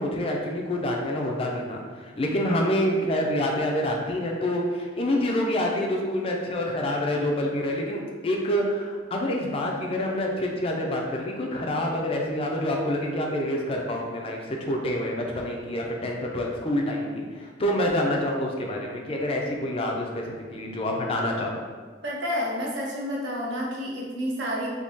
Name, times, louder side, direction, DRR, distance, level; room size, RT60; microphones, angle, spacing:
voice 1, 0.0-21.6, left 1 dB, 30° left, 0 dB, 0.4 m, -27 dB
voice 2, 22.0-24.7, equal, 65° right, -3 dB, 0.7 m, -29 dB
3.6 x 2.7 x 2.7 m, 1.5 s
head